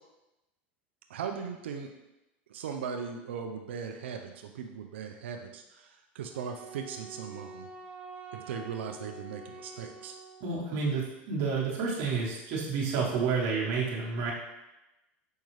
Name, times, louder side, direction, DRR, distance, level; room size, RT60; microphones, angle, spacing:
voice 1, 1.1-1.9 2.5-5.6 6.1-7.7 8.3-10.1, right 6 dB, 90° right, 4 dB, 0.4 m, -38 dB
Wind instrument woodwind instrument, 6.3-10.6, right 3 dB, 20° right, 0.5 m, -47 dB
voice 2, 10.4-14.3, right 5 dB, 60° right, -5 dB, 1.1 m, -30 dB
5.3 x 2.3 x 3.1 m, 0.98 s
supercardioid pair, 110°, 6 cm